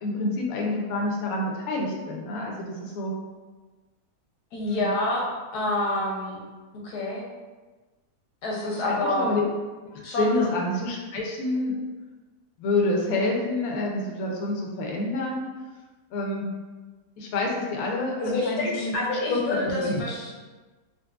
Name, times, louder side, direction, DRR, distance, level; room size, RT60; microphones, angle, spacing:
voice 1, 0.0-3.1 4.6-4.9 8.6-9.5 9.9-11.8 12.6-15.5 16.1-16.5 17.2-18.9 19.3-20.0, left 2 dB, 70° left, -1 dB, 1.0 m, -28 dB
voice 2, 4.5-6.4 6.8-7.2 8.4-9.3 10.0-10.5 18.2-20.3, left 1 dB, 90° left, -3 dB, 1.3 m, -27 dB
3.7 x 2.4 x 2.3 m, 1.3 s
omnidirectional pair, 1.6 m